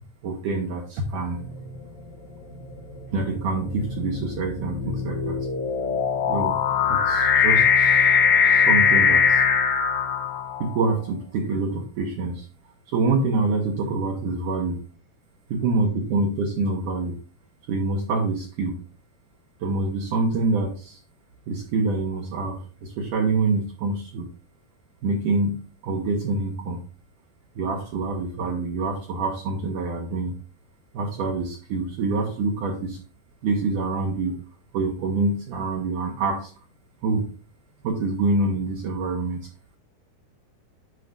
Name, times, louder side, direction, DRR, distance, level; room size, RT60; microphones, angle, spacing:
voice 1, 0.2-1.5 3.1-5.5 6.3-6.6 6.9-9.4 10.6-12.5 12.9-14.8 15.5-17.2 17.7-18.8 19.6-21.0 21.5-24.3 25.0-26.8 27.6-30.4 30.9-33.0 33.4-34.4 34.7-36.5 37.0-37.3 37.8-39.4, right 3 dB, 70° right, 1 dB, 2.1 m, -26 dB
sound 1, 1.4-1.8 2.6-10.8, left 6 dB, 75° left, 1.7 m, -21 dB
9.4 x 5.6 x 2.5 m, 0.36 s
omnidirectional pair, 4.8 m